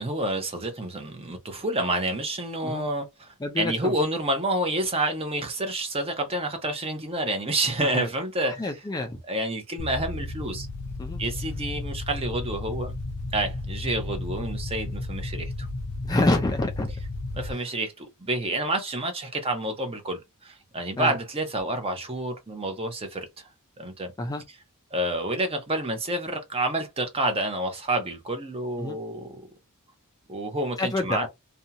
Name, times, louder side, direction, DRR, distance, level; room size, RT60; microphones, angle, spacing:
voice 1, 0.0-8.7 9.3-10.7 11.2-12.9 13.3-15.7 17.3-23.3 23.8-24.1 24.9-29.4 30.3-31.3, right 1 dB, 25° right, 0.7 m, -29 dB
voice 2, 3.4-3.9 7.9-8.1 8.4-9.2 11.0-11.2 16.0-16.9 17.5-17.6 21.0-21.2 24.2-24.4 28.8-29.0 30.8-31.3, left 2 dB, 15° left, 0.4 m, -27 dB
sound 1, 9.8-17.5, left 2 dB, 75° left, 0.6 m, -33 dB
2.7 x 2.3 x 2.7 m
head